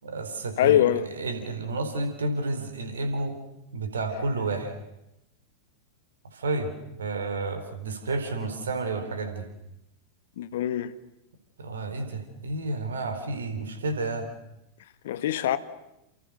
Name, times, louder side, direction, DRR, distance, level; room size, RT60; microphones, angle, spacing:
voice 1, 0.0-3.4 3.7-4.7 6.3-6.7 7.0-9.5 11.6-14.3, right 2 dB, 70° right, 4.4 m, -31 dB
voice 2, 0.6-1.0 10.4-10.9 15.0-15.6, left 11 dB, 55° left, 1.5 m, -23 dB
29.5 x 27.5 x 6.6 m
figure-of-eight pair, 90°, 0 cm